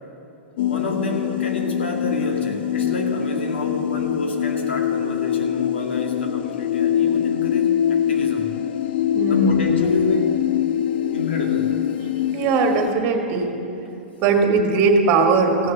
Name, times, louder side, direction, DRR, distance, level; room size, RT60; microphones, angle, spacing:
sound 1, 0.6-12.9, left 10 dB, 60° left, 0.4 m, -23 dB
voice 1, 0.7-8.5 9.3-10.3 11.1-11.8, left 2 dB, 80° left, 2 dB, 1.9 m, -29 dB
voice 2, 9.1-9.6 12.3-13.5 14.2-15.7, right 4 dB, 40° right, 4 dB, 1.8 m, -19 dB
15.5 x 6.5 x 7.2 m, 2.7 s
hypercardioid pair, 110°, 6 cm